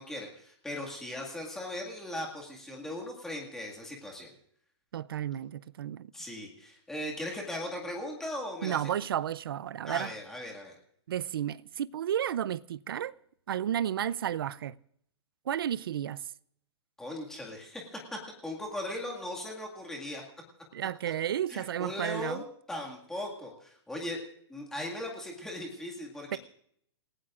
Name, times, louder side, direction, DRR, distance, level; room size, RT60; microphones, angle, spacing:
voice 1, 0.0-4.3 6.1-8.9 9.8-10.8 17.0-20.2 21.5-24.2 24.5-26.4, left 1 dB, 5° left, 2.0 m, -38 dB
voice 2, 4.9-6.1 8.6-10.1 11.1-13.1 13.5-14.8 15.5-16.2 20.7-22.4 26.3-26.4, right 10 dB, 50° right, 0.5 m, -32 dB
28.5 x 17.0 x 2.5 m
hypercardioid pair, 180°, 15 cm